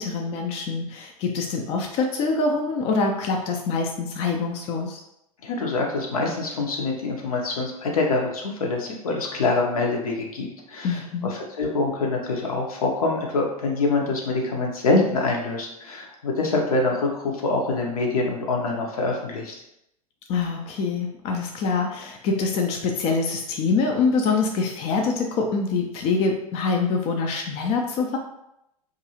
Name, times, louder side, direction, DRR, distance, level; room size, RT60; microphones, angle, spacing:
voice 1, 0.0-5.0 10.8-11.3 20.3-28.2, left 4 dB, 30° left, 2 dB, 0.4 m, -25 dB
voice 2, 5.4-19.6, left 3 dB, 70° left, 0 dB, 0.7 m, -25 dB
2.6 x 2.5 x 2.8 m, 0.82 s
figure-of-eight pair, 90°, 19 cm